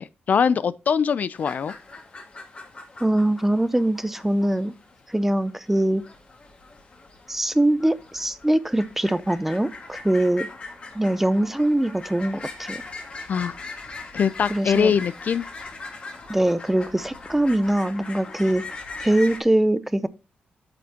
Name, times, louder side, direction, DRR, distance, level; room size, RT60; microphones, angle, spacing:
voice 1, 0.0-1.7 13.3-13.6 14.1-15.4, left 7 dB, 50° left, 0.4 m, -22 dB
sound 1, 1.3-19.4, left 3 dB, 30° left, 1.8 m, -40 dB
voice 2, 3.0-4.7 5.1-6.0 7.3-10.5 10.9-12.8 14.5-14.9 16.3-18.6 19.0-20.1, right 1 dB, 5° right, 0.5 m, -22 dB
9.3 x 6.9 x 2.8 m
wide cardioid pair, 160°, 4 cm